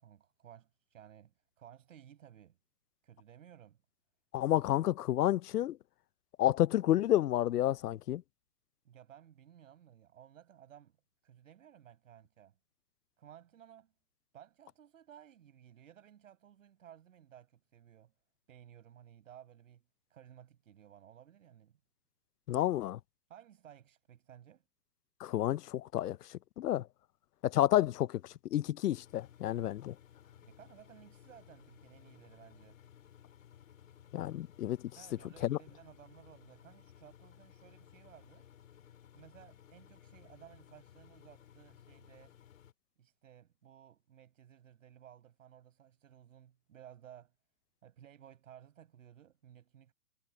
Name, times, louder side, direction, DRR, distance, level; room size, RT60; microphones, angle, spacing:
voice 1, 0.0-2.6 3.0-3.8 8.8-11.0 11.2-12.5 13.2-13.9 14.3-18.1 18.5-19.8 20.1-21.8 23.3-24.6 30.4-32.8 34.9-38.5 39.1-42.3 43.0-47.3 47.8-49.9, right 10 dB, 55° right, 6.7 m, -57 dB
voice 2, 4.3-5.8 6.4-8.2 22.5-23.0 25.2-26.2 26.6-26.9 27.4-28.2 28.5-29.9 34.1-34.8 35.4-35.6, left 13 dB, 80° left, 0.7 m, -30 dB
Engine, 28.9-42.7, left 9 dB, 60° left, 6.2 m, -59 dB
hypercardioid pair, 180°, 46 cm